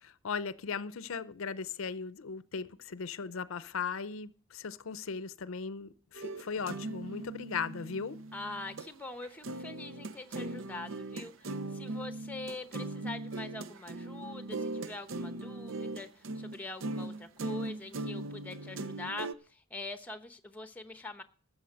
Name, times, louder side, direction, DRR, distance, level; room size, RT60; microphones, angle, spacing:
voice 1, 0.0-8.2, left 5 dB, 75° left, 0.6 m, -38 dB
sound 1, 6.1-8.9 9.2-19.3, right 2 dB, 70° right, 0.6 m, -39 dB
voice 2, 8.3-21.2, left 2 dB, 5° left, 0.8 m, -44 dB
13.5 x 7.5 x 6.3 m
head